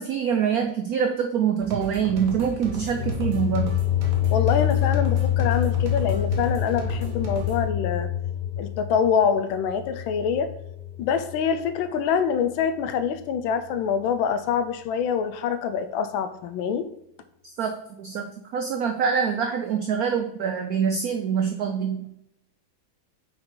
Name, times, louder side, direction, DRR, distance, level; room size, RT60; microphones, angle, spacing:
voice 1, 0.0-3.7 17.4-22.2, right 7 dB, 80° right, 6 dB, 0.8 m, -25 dB
sound 1, 1.6-7.7, right 4 dB, 50° right, 1.3 m, -36 dB
sound 2, 2.7-11.7, left 11 dB, 60° left, 1.6 m, -26 dB
voice 2, 4.3-8.1 8.6-10.5 11.0-16.9, left 7 dB, 80° left, 10 dB, 1.3 m, -25 dB
6.0 x 5.4 x 3.8 m, 0.76 s
omnidirectional pair, 2.2 m